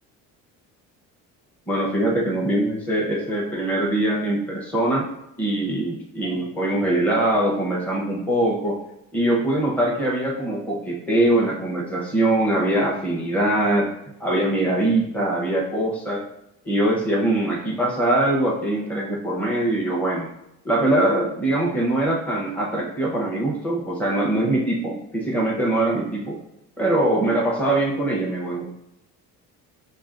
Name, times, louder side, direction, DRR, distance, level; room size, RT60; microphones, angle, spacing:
voice 1, 1.7-5.1 5.4-8.8 9.1-13.9 14.2-16.2 16.6-20.3 20.6-26.4 26.8-28.7, right 1 dB, 5° left, -3 dB, 0.9 m, -22 dB
5.0 x 2.8 x 2.5 m, 0.85 s
supercardioid pair, 85°, 38 cm